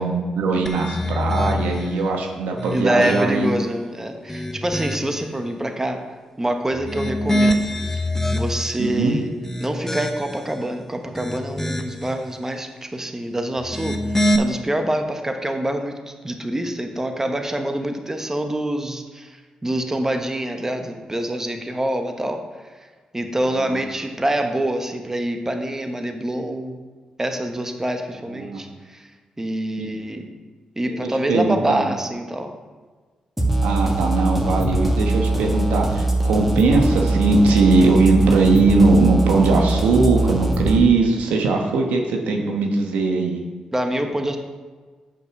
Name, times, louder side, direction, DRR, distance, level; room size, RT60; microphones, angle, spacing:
voice 1, 0.0-3.5 8.8-9.2 23.5-23.8 28.3-28.6 29.8-29.9 31.3-31.9 33.6-43.4, right 3 dB, 85° right, 2 dB, 1.1 m, -19 dB
sound 1, 0.7-2.0 2.5-3.6 4.1-5.2 6.7-8.9 9.4-10.5 11.0-12.1 13.6-14.4, left 1 dB, 15° left, 0.9 m, -25 dB
voice 2, 2.7-6.0 6.4-7.7 8.3-9.3 9.6-14.0 14.4-22.4 23.1-26.8 27.2-29.1 29.4-30.3 30.8-32.5 43.7-44.4, right 1 dB, 20° right, 5 dB, 1.1 m, -25 dB
sound 2, 33.4-40.8, right 1 dB, 5° right, 1.8 m, -22 dB
7.1 x 5.4 x 6.1 m, 1.4 s
supercardioid pair, 50°, 2 cm